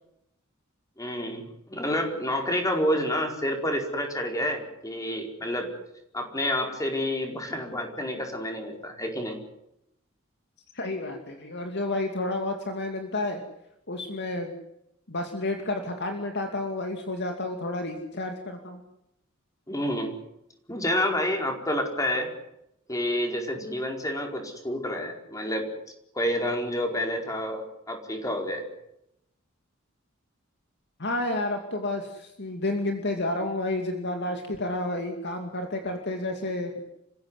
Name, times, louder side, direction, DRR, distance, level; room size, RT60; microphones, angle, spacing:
voice 1, 1.0-5.7 6.1-9.4 19.7-20.1 20.7-22.3 22.9-25.7 26.1-28.6, left 1 dB, 15° left, 3 dB, 4.7 m, -29 dB
voice 2, 10.7-13.4 13.9-14.5 15.1-18.8 31.0-36.7, left 2 dB, 55° left, 4 dB, 2.6 m, -30 dB
28.0 x 16.0 x 9.8 m, 0.82 s
head